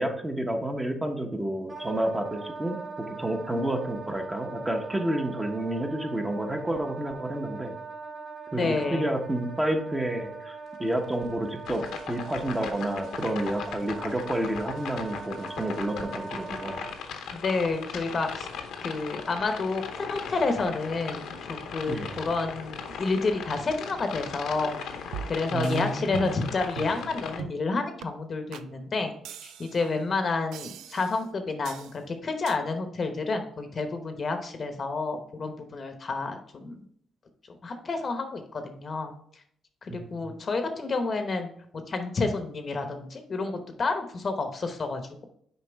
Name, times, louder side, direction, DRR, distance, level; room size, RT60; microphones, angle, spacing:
voice 1, 0.0-7.8 8.5-16.8 21.9-22.2 25.5-26.4 39.9-40.3, right 1 dB, 10° right, 3 dB, 1.0 m, -30 dB
Wind instrument woodwind instrument, 1.7-17.0, right 4 dB, 25° right, 1.7 m, -41 dB
voice 2, 8.5-9.1 17.3-18.5 18.8-36.8 37.6-39.2 39.8-41.5 41.9-45.2, left 3 dB, 40° left, 6 dB, 0.9 m, -30 dB
sound 1, 11.7-27.4, left 6 dB, 80° left, 0.9 m, -38 dB
sound 2, 25.1-25.8 26.1-26.5 26.8-27.0 27.4-27.6 28.0-28.1 28.5-28.7 29.2-29.9 30.5-31.2 31.6-32.0 32.5-32.6, right 9 dB, 85° right, 0.3 m, -40 dB
6.7 x 4.6 x 3.4 m, 0.67 s
cardioid pair, 90°, 0 cm